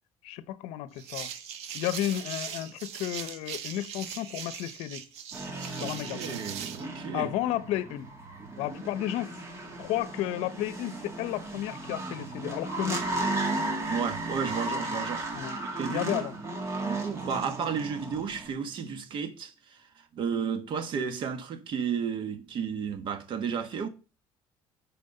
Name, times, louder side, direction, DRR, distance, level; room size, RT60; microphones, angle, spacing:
voice 1, 0.2-1.3 1.7-5.0 5.7-6.4 7.1-8.1 8.6-9.3 9.8-13.0 15.3-15.6 15.9-16.4 17.4-17.5, left 14 dB, 80° left, 0.7 m, -32 dB
sound 1, 1.0-6.9, right 8 dB, 75° right, 1.2 m, -40 dB
sound 2, 5.3-18.5, right 2 dB, 25° right, 1.9 m, -35 dB
voice 2, 5.8-7.3 13.9-16.3 16.8-23.9, right 6 dB, 50° right, 1.3 m, -33 dB
9.4 x 4.3 x 5.4 m
cardioid pair, 130°, 11 cm